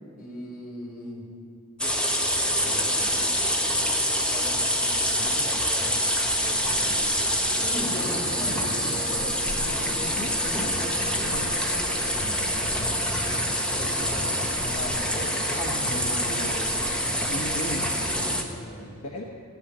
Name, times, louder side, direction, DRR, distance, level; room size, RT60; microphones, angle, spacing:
voice 1, 0.2-1.2 2.4-3.2 4.3-6.2 6.4-7.2 7.6-9.8 11.0-12.5 13.6-15.5 18.4-19.0, equal, 40° left, -4 dB, 4.0 m, -40 dB
sound 1, 1.8-18.4, equal, 5° left, 1.0 m, -26 dB
voice 2, 10.0-10.8 11.2-11.5 15.5-17.0 17.3-18.1 19.0-19.2, left 1 dB, 70° left, -2 dB, 1.3 m, -36 dB
16.5 x 9.6 x 6.8 m, 2.7 s
head